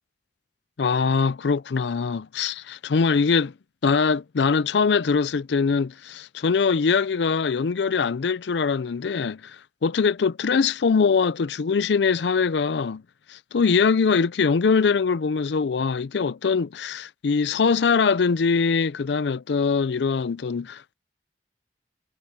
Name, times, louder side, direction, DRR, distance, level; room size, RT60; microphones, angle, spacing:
voice 1, 0.8-3.5 3.8-9.6 9.8-13.0 13.3-20.9, left 5 dB, 75° left, 0.5 m, -22 dB
head